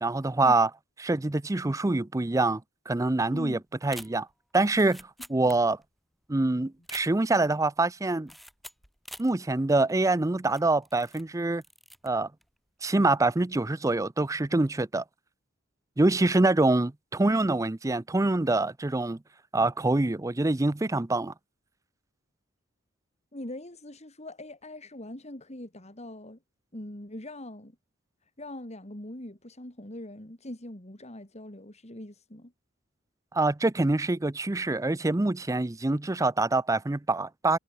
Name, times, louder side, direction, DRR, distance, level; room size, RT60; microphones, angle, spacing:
voice 1, 0.0-0.7 1.0-2.6 2.9-4.3 4.5-5.8 6.3-8.3 9.2-11.6 12.0-12.3 12.8-15.0 16.0-19.2 19.5-21.3 33.3-37.6, right 2 dB, 15° right, 0.5 m, -25 dB
voice 2, 3.3-3.6 23.3-26.4 26.7-27.8 28.4-32.5, left 1 dB, 35° left, 3.2 m, -42 dB
sound 1, 3.8-6.0 6.2-6.3 6.7-7.5 8.3-9.4 9.8-9.9 10.5-11.3 11.5-12.1 12.4-12.7, equal, ahead, 2.9 m, -47 dB
head